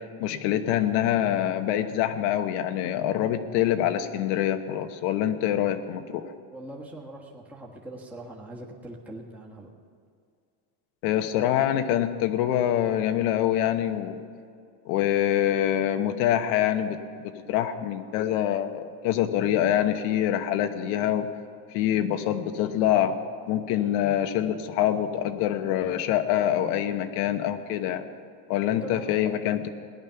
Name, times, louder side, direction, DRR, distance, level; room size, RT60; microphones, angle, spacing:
voice 1, 0.0-6.2 11.0-14.2 14.8-21.3 21.7-23.2 23.5-28.0 28.5-29.7, left 11 dB, 85° left, 8 dB, 1.2 m, -25 dB
voice 2, 6.2-9.7 28.6-29.1, right 1 dB, 5° right, -3 dB, 1.4 m, -42 dB
18.0 x 11.0 x 5.8 m, 2.3 s
cardioid pair, 155°, 47 cm